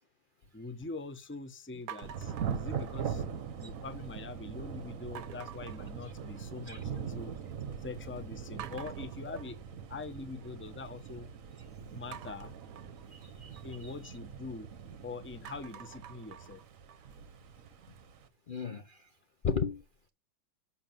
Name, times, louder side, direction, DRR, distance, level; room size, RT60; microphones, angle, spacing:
voice 1, 0.5-3.2 3.6-7.4 7.8-9.6 9.9-11.3 11.9-12.5 13.6-14.7 15.0-16.6, left 3 dB, 15° left, 0.4 m, -43 dB
sound 1, 1.9-3.4 3.7-4.3 5.2-6.7 7.0-7.6 7.9-8.0 8.6-10.7 12.1-14.9 15.3-18.2, right 9 dB, 70° right, 1.2 m, -50 dB
Thunder / Rain, 2.0-18.3, right 7 dB, 55° right, 1.1 m, -42 dB
voice 2, 13.1-13.9 18.5-19.1 19.4-20.1, left 6 dB, 75° left, 0.4 m, -36 dB
7.1 x 6.4 x 7.5 m
omnidirectional pair, 2.1 m